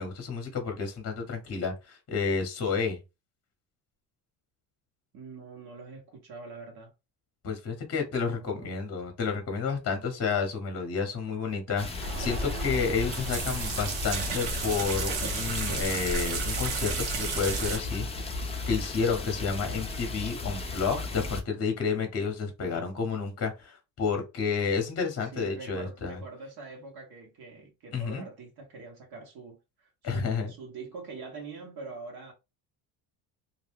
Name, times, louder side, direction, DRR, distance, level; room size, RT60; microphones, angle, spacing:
voice 1, 0.0-3.0 7.4-18.4 18.7-26.2 27.9-28.2 30.0-30.5, left 5 dB, 30° left, 0.9 m, -30 dB
voice 2, 5.1-6.9 8.1-8.7 19.6-20.0 25.3-32.3, right 4 dB, 50° right, 1.0 m, -44 dB
sound 1, 11.8-21.4, left 3 dB, 15° left, 0.5 m, -35 dB
sound 2, 12.0-17.8, right 5 dB, 90° right, 0.9 m, -33 dB
2.4 x 2.1 x 3.4 m
supercardioid pair, 95°, 46 cm